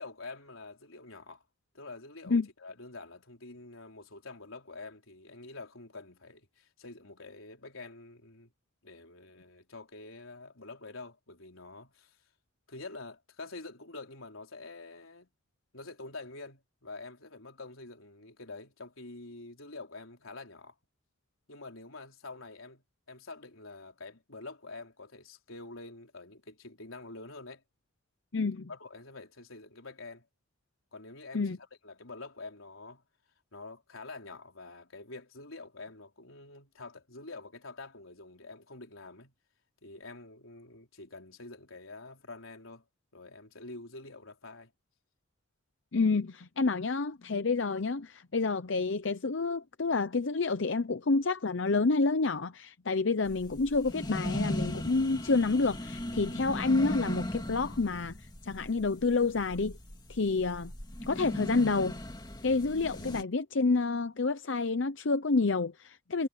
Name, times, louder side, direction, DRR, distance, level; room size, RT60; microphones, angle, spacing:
voice 1, 0.0-1.4 1.7-8.5 8.8-12.2 12.7-15.3 15.7-20.8 21.5-27.6 28.7-30.3 30.9-33.0 33.5-39.3 39.8-42.9 43.1-44.7, left 3 dB, 90° left, 4.2 m, -47 dB
voice 2, 28.3-28.7 31.3-31.6 45.9-58.1 58.4-59.7 60.1-60.7 61.0-61.9 62.4-66.3, left 3 dB, 65° left, 0.7 m, -28 dB
sound 1, 53.3-63.2, left 1 dB, 20° left, 2.4 m, -38 dB
head